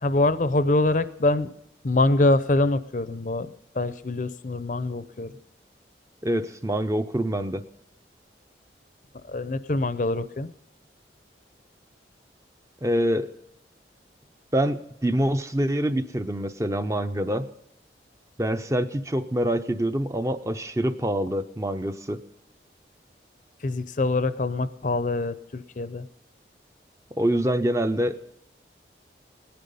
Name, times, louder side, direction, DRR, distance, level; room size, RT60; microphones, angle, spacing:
voice 1, 0.0-1.5 1.8-5.4 9.1-10.5 23.6-26.1, left 2 dB, 45° left, 13 dB, 0.6 m, -24 dB
voice 2, 6.2-7.6 12.8-13.3 14.5-17.5 18.4-22.2 27.2-28.2, right 1 dB, 15° right, 9 dB, 0.5 m, -25 dB
18.5 x 10.5 x 5.4 m, 0.80 s
head